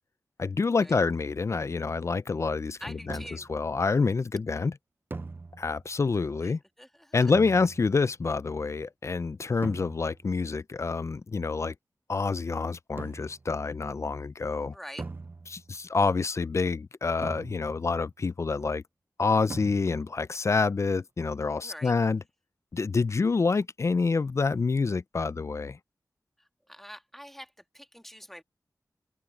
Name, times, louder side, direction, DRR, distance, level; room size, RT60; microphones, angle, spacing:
voice 1, 0.4-3.2 3.5-4.7 5.6-6.6 7.1-11.7 12.1-14.7 15.5-18.8 19.2-22.2 22.7-25.8, left 4 dB, 45° left, 0.4 m, -27 dB
voice 2, 2.8-3.5 6.4-7.3 14.7-15.1 21.6-21.9 26.4-28.4, equal, 5° left, 1.6 m, -46 dB
sound 1, 3.1-3.6 5.1-6.0 7.3-8.1 9.6-10.3 13.0-13.5 15.0-15.8 17.2-18.0 19.5-20.2, right 3 dB, 30° right, 0.4 m, -42 dB
wide cardioid pair, 70°, 7 cm